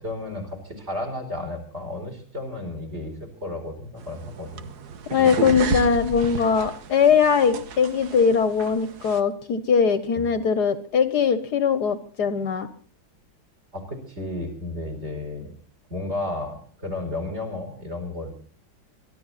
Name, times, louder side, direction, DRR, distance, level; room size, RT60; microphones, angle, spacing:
voice 1, 0.0-4.7 5.2-5.6 10.2-10.3 13.7-15.5 15.9-18.3, left 2 dB, 35° right, 5 dB, 4.8 m, -33 dB
sound 1, 4.0-9.2, right 6 dB, 60° right, 1.6 m, -33 dB
voice 2, 5.1-12.7, left 6 dB, 65° left, 12 dB, 1.5 m, -21 dB
23.0 x 13.0 x 4.1 m, 0.43 s
omnidirectional pair, 2.0 m